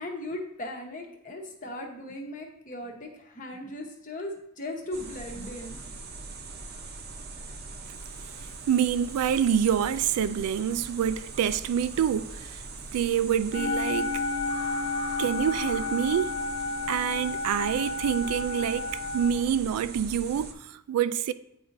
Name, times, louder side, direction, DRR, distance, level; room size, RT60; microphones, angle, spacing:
voice 1, 0.0-5.8, left 1 dB, 35° left, 1.0 m, -38 dB
sound 1, 4.9-20.5, right 3 dB, 45° right, 0.6 m, -41 dB
voice 2, 8.4-12.6 12.9-14.2 15.2-16.3 16.9-21.3, right 8 dB, 85° right, 0.3 m, -27 dB
sound 2, 13.5-19.3, left 3 dB, 85° left, 1.3 m, -31 dB
9.4 x 4.0 x 2.6 m
head